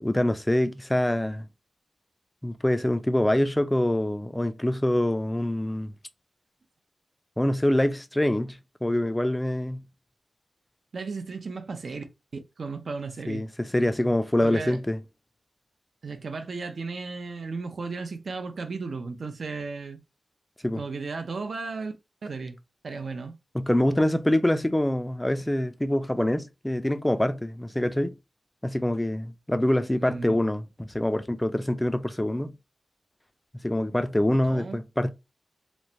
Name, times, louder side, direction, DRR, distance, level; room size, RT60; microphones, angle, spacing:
voice 1, 0.0-1.5 2.4-5.9 7.4-9.8 13.3-15.0 20.6-20.8 23.5-28.1 28.6-32.5 33.6-35.1, left 1 dB, 10° left, 0.3 m, -25 dB
voice 2, 10.9-12.0 12.6-13.5 14.4-14.8 16.0-20.0 20.8-21.9 22.2-22.6 22.8-23.3 30.0-30.4 34.4-34.8, right 4 dB, 70° right, 0.5 m, -35 dB
3.0 x 2.2 x 2.6 m
wide cardioid pair, 110°, 0 cm